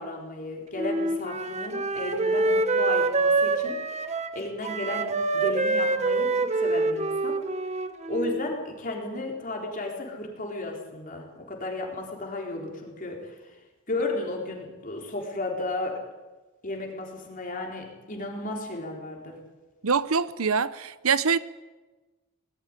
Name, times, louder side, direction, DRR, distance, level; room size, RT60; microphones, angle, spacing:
voice 1, 0.0-7.4 8.1-13.5 13.9-16.1 16.6-19.4, left 2 dB, 40° left, 4.2 m, -34 dB
Wind instrument woodwind instrument, 0.8-8.5, right 3 dB, 30° right, 1.3 m, -26 dB
voice 2, 19.8-21.4, right 5 dB, 80° right, 0.8 m, -24 dB
19.5 x 14.0 x 9.9 m
head